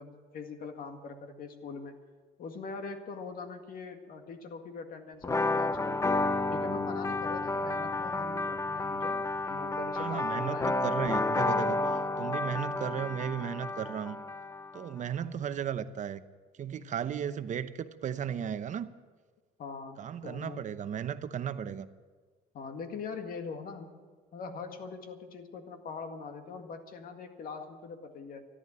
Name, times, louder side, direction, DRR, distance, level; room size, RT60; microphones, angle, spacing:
voice 1, 0.0-2.0 2.4-6.0 6.5-10.7 11.8-12.1 19.6-20.7 22.5-24.0 24.3-28.5, left 5 dB, 60° left, 1.9 m, -42 dB
sound 1, 5.2-14.8, left 2 dB, 20° left, 0.5 m, -31 dB
voice 2, 9.9-11.8 12.2-14.2 14.7-16.2 16.6-18.9 20.0-21.9, right 8 dB, 45° right, 0.8 m, -35 dB
14.0 x 11.0 x 8.8 m
cardioid pair, 110°, 17 cm